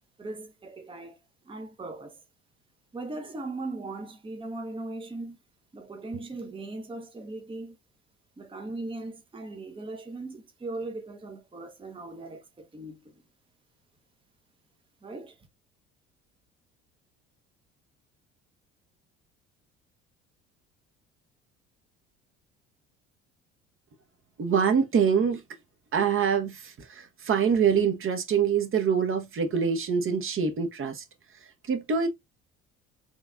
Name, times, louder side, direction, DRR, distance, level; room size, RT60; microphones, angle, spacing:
voice 1, 0.2-1.2 1.5-2.2 2.9-5.4 5.7-7.8 8.4-13.1 15.0-15.4, right 2 dB, 15° right, 1.0 m, -38 dB
voice 2, 24.4-25.4 25.9-31.0 31.3-32.1, right 6 dB, 35° right, 1.2 m, -25 dB
6.3 x 3.4 x 2.5 m
figure-of-eight pair, 55°, 36 cm